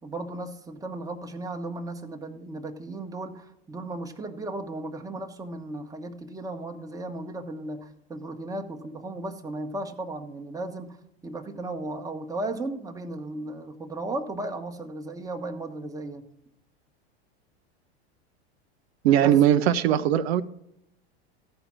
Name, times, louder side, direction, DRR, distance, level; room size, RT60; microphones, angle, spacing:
voice 1, 0.0-11.0 11.2-16.3 19.2-19.4, right 2 dB, 10° right, 5 dB, 1.1 m, -35 dB
voice 2, 19.0-20.4, right 10 dB, 75° right, 10 dB, 0.7 m, -20 dB
14.5 x 5.1 x 6.1 m, 0.79 s
hypercardioid pair, 105°, 33 cm